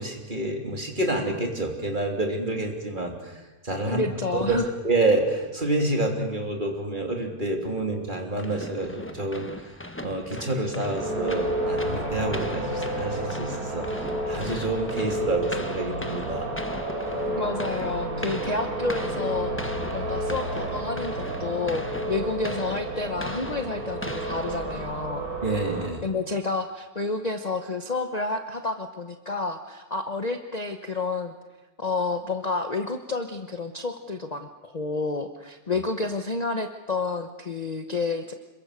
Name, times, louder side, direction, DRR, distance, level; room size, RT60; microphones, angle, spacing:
voice 1, 0.0-3.4 3.6-4.1 4.5-9.7 10.0-16.5 25.4-26.1 35.7-35.8, right 2 dB, 30° right, 2 dB, 3.3 m, -28 dB
voice 2, 3.8-4.7 17.4-25.3 26.0-31.3 31.8-38.3, left 3 dB, 30° left, 6 dB, 1.0 m, -30 dB
sound 1, 8.4-25.2, left 1 dB, 10° left, 1.1 m, -39 dB
sound 2, 10.9-25.9, right 1 dB, 70° right, 4.7 m, -31 dB
27.0 x 22.5 x 6.7 m, 1.1 s
omnidirectional pair, 1.6 m